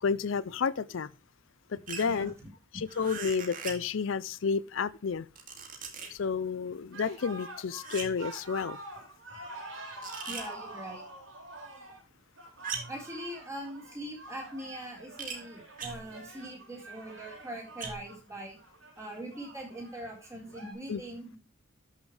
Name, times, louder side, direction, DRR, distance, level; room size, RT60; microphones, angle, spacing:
voice 1, 0.0-1.1 1.7-2.3 2.7-5.3 6.1-8.8 20.9-21.0, left 5 dB, 65° left, 0.5 m, -31 dB
sound 1, 1.9-2.2 2.9-3.9 5.1-6.2 7.8-8.3 10.0-10.5 12.6-13.0 15.2-15.4 15.8-16.2 17.8-18.2, right 5 dB, 40° right, 2.2 m, -40 dB
voice 2, 2.0-2.5 10.3-11.0 12.9-18.6 19.0-21.4, right 1 dB, 15° right, 4.1 m, -42 dB
sound 2, 6.9-20.7, right 2 dB, 75° right, 5.3 m, -47 dB
12.5 x 6.4 x 3.2 m
head